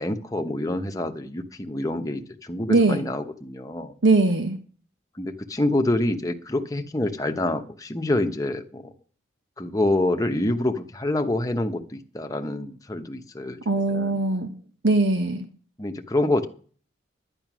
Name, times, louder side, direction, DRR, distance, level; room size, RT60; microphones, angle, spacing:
voice 1, 0.0-3.9 5.2-8.9 9.6-14.2 15.8-16.4, left 1 dB, 20° left, 5 dB, 0.9 m, -27 dB
voice 2, 2.7-3.0 4.0-4.6 13.6-14.5 14.8-15.4, right 2 dB, 70° right, 7 dB, 1.3 m, -20 dB
11.0 x 10.0 x 6.1 m, 0.42 s
head